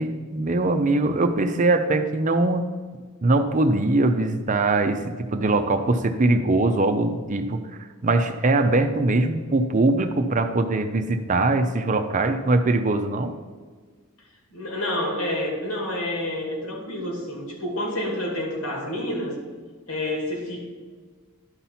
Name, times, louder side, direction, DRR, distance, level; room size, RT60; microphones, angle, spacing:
voice 1, 0.0-2.7 3.2-7.6 8.0-13.3, right 2 dB, 35° right, 7 dB, 0.5 m, -22 dB
voice 2, 14.5-19.3 19.9-20.7, left 1 dB, 80° left, 0 dB, 2.4 m, -28 dB
11.0 x 4.2 x 5.8 m, 1.5 s
head